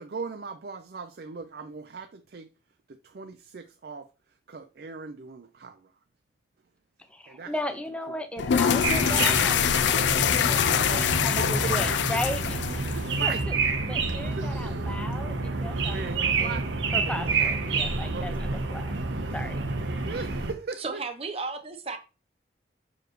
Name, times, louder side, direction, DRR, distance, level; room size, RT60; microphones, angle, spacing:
voice 1, 0.0-2.5 2.9-4.1 4.5-5.9 7.3-7.5 8.1-8.2 9.0-9.5 11.1-11.9 12.9-13.5 14.2-15.0 15.7-16.7 17.0-17.6 18.1-18.7 19.3-19.5 20.0-21.0, right 4 dB, 55° right, 0.4 m, -39 dB
voice 2, 7.1-13.5 13.8-16.6 16.9-18.9 19.3-19.6, left 1 dB, 5° left, 0.6 m, -36 dB
sound 1, 8.4-13.4, left 8 dB, 75° left, 0.4 m, -24 dB
sound 2, 8.8-20.5, right 3 dB, 85° right, 1.0 m, -29 dB
voice 3, 20.8-22.0, right 4 dB, 30° right, 0.8 m, -34 dB
6.3 x 4.9 x 3.1 m
head